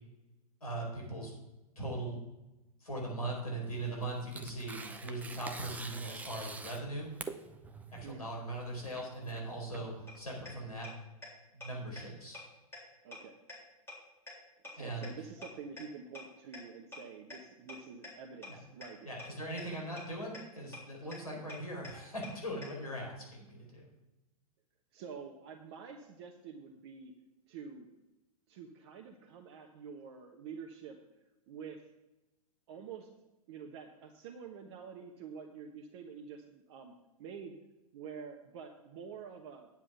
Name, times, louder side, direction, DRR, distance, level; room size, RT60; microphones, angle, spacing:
voice 1, 0.6-1.3 1.7-2.2 2.8-7.2 7.9-10.9 11.5-12.4 14.8-15.1 18.5-18.6 19.0-23.9, right 1 dB, 75° left, -1 dB, 4.7 m, -40 dB
Tearing, 3.7-10.4, right 3 dB, 10° right, 0.6 m, -47 dB
sound 1, 10.1-10.2 10.5-10.6 10.8-10.9 11.2-11.3 11.6-11.7 12.0-12.1 12.3-12.4 12.7-12.8 13.1-13.2 13.5-13.6 13.9-14.0 14.3-14.4 14.6-14.7 15.0-15.1 15.4-15.5 15.8-15.9 16.1-16.2 16.5-16.6 16.9-17.0 17.3-17.4 17.7-17.8 18.0-18.1 18.4-18.5 18.8-18.9 19.2-19.3 19.6-19.7 20.0-20.1 20.3-20.4 20.7-20.8 21.1-21.2 21.5-21.6 21.8-21.9 22.2-22.3 22.6-22.7, left 2 dB, 10° left, 3.6 m, -45 dB
voice 2, 13.0-13.4 14.6-19.1 21.3-21.5 24.9-27.1 27.5-27.9 28.5-31.0 31.5-31.9 32.7-33.1 33.5-36.9 37.2-37.5 37.9-39.7, right 6 dB, 45° right, 2 dB, 1.1 m, -47 dB
10.0 x 7.3 x 5.9 m, 1.0 s
figure-of-eight pair, 100°, 19 cm